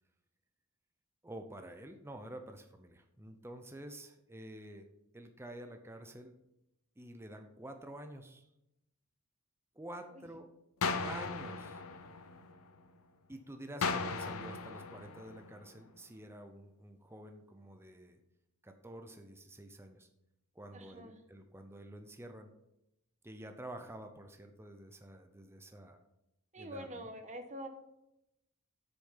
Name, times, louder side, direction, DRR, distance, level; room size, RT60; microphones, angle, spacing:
voice 1, 1.2-4.9 5.1-6.3 7.0-8.4 9.8-10.5 11.0-11.8 13.3-18.2 18.6-20.1 20.5-22.5 23.2-26.0 26.6-27.1, right 1 dB, 10° right, 6 dB, 0.7 m, -49 dB
sound 1, 10.8-12.9 13.8-15.9, left 4 dB, 75° left, 0.8 m, -37 dB
voice 2, 20.7-21.2 26.5-27.7, equal, 35° right, 6 dB, 1.1 m, -45 dB
8.2 x 6.7 x 5.7 m, 0.85 s
head